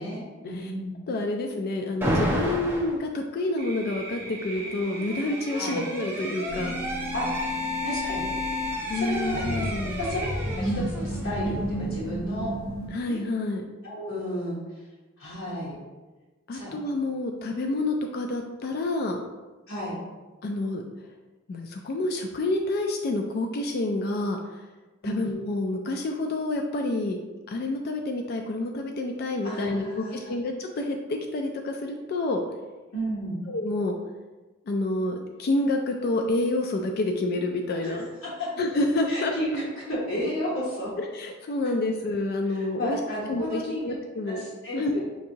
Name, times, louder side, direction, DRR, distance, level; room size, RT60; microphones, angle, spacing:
voice 1, 0.0-1.0 5.5-5.8 7.1-7.6 7.8-8.3 8.9-12.5 13.0-13.2 13.8-14.6 15.2-15.8 16.5-16.8 19.7-20.0 25.0-25.2 29.4-30.4 32.9-33.4 37.8-38.5 39.1-39.6 39.9-40.9 42.4-43.8 44.2-45.0, equal, 75° left, -8 dB, 1.1 m, -33 dB
voice 2, 1.1-6.8 8.9-10.0 12.9-13.7 16.5-19.2 20.4-20.8 21.5-24.6 25.0-27.2 27.5-32.4 33.5-34.0 34.7-38.1 38.6-39.3 41.0-43.0 43.3-44.4 44.7-45.0, left 2 dB, 50° left, 3 dB, 0.3 m, -28 dB
Alarm, 2.0-3.0 4.2-11.9, left 1 dB, 10° right, 0.6 m, -32 dB
sound 1, 3.6-10.6, right 3 dB, 50° right, 0.9 m, -39 dB
sound 2, 6.5-12.9, right 1 dB, 35° left, 1.0 m, -32 dB
5.8 x 2.6 x 2.8 m, 1.2 s
head